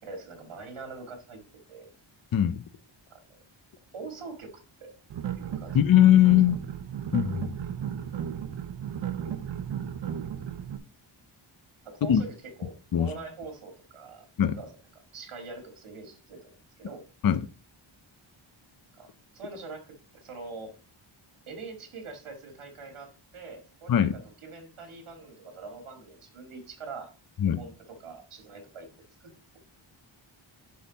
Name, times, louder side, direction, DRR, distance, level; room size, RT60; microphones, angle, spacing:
voice 1, 0.0-1.4 1.7-1.9 3.1-3.4 3.9-4.9 5.4-5.9 11.8-14.3 14.6-17.0 18.9-19.1 19.3-20.7 21.5-27.1 27.5-28.9, right 4 dB, 85° right, 2.1 m, -43 dB
voice 2, 2.3-2.6 5.7-6.6 7.1-7.5 12.1-12.2 12.9-13.1 14.4-14.6 17.2-17.5 23.9-24.1 27.4-27.6, left 11 dB, 45° left, 0.5 m, -20 dB
sound 1, 5.1-10.8, right 9 dB, 60° right, 0.8 m, -34 dB
11.5 x 3.9 x 4.0 m
wide cardioid pair, 165°, 48 cm